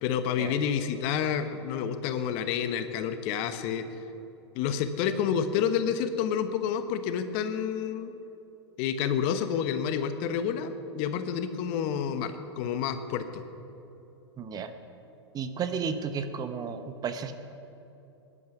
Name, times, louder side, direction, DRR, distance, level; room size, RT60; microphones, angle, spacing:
voice 1, 0.0-3.8 4.5-8.1 8.8-13.4, left 8 dB, 45° left, 9 dB, 1.1 m, -29 dB
voice 2, 14.4-14.7 15.3-17.3, right 6 dB, 25° right, 9 dB, 1.0 m, -33 dB
19.5 x 11.0 x 6.1 m, 2.9 s
figure-of-eight pair, 105°, 15 cm